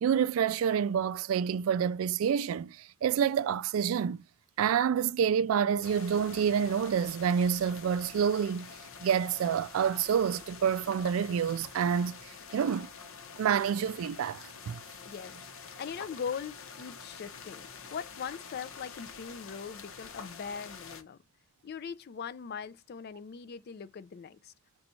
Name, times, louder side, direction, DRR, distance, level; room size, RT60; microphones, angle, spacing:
voice 1, 0.0-4.2 4.6-8.7 9.0-12.9 13.4-14.8, right 7 dB, 85° right, 0.3 m, -28 dB
sound 1, 5.8-21.0, left 5 dB, 80° left, 0.8 m, -47 dB
voice 2, 15.0-15.4 15.8-21.2 21.6-24.5, left 6 dB, 50° left, 0.4 m, -40 dB
4.0 x 2.3 x 4.2 m
head